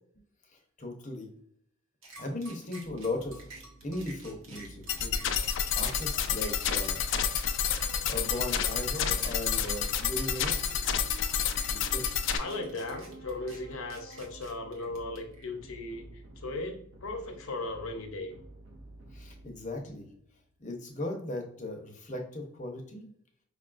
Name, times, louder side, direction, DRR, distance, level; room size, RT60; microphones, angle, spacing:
voice 1, 0.5-1.3 2.2-5.2 5.7-7.1 8.1-10.8 11.6-12.0 19.1-20.1 20.6-23.1, left 2 dB, 35° left, 2 dB, 0.7 m, -38 dB
sound 1, 2.0-15.4, right 2 dB, 85° right, 1.0 m, -51 dB
sound 2, 2.8-20.4, right 1 dB, 65° right, 0.6 m, -51 dB
sound 3, 4.9-12.4, left 7 dB, 60° left, 0.3 m, -29 dB
voice 2, 12.4-18.4, left 2 dB, 90° left, 5 dB, 0.7 m, -37 dB
5.2 x 2.3 x 2.4 m, 0.65 s
head